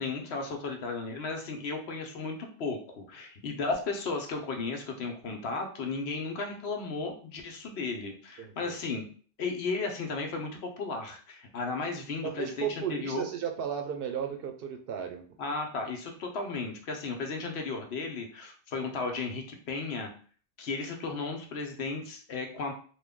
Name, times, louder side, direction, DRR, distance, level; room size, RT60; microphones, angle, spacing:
voice 1, 0.0-9.1 9.4-13.2 15.4-20.1 20.6-22.7, left 4 dB, 80° left, 3 dB, 1.0 m, -34 dB
voice 2, 8.4-8.7 12.2-15.3, right 8 dB, 65° right, 5 dB, 0.7 m, -34 dB
3.0 x 2.2 x 3.5 m, 0.42 s
omnidirectional pair, 1.1 m